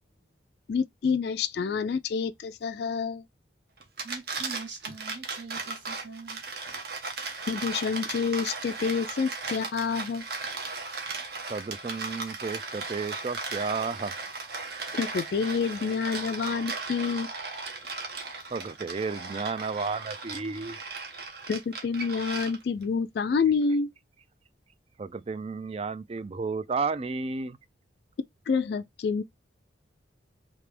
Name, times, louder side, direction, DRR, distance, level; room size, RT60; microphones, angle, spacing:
voice 1, 0.7-3.2 7.5-10.2 14.9-17.3 21.5-23.9 28.5-29.2, left 5 dB, 55° left, 0.3 m, -28 dB
sound 1, 3.8-22.8, right 4 dB, 55° right, 1.0 m, -37 dB
voice 2, 4.0-6.4, right 4 dB, 70° right, 1.9 m, -43 dB
voice 3, 11.5-14.1 18.5-20.8 25.0-27.6, right 4 dB, 30° right, 0.3 m, -32 dB
3.3 x 2.9 x 3.3 m
head